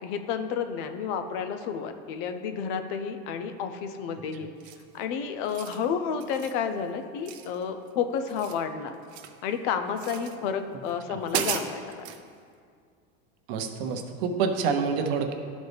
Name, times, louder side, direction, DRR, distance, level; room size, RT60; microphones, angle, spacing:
voice 1, 0.0-4.5 4.9-8.9 9.4-12.0, left 7 dB, 55° left, 8 dB, 0.6 m, -31 dB
sound 1, 4.6-5.0 5.4-5.8 6.2-6.6 7.2-7.9 8.2-9.4 10.0-10.4 10.9-11.0 11.3-12.2, right 9 dB, 90° right, 0.7 m, -35 dB
voice 2, 13.5-15.3, right 5 dB, 65° right, 5 dB, 0.8 m, -27 dB
11.5 x 4.1 x 3.4 m, 2.2 s
supercardioid pair, 140°, 31 cm